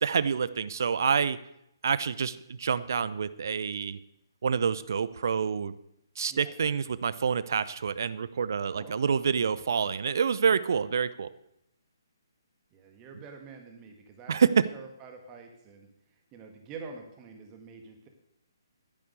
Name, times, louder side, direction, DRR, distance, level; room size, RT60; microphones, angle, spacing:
voice 1, 0.0-1.4 1.8-4.0 4.4-5.7 6.2-11.3 14.3-14.7, right 6 dB, 50° right, 16 dB, 0.7 m, -27 dB
voice 2, 8.7-9.2 12.7-14.4 14.7-15.9 16.3-18.1, right 4 dB, 20° right, 4 dB, 1.6 m, -46 dB
10.5 x 10.5 x 6.6 m, 0.79 s
figure-of-eight pair, 135°, 2 cm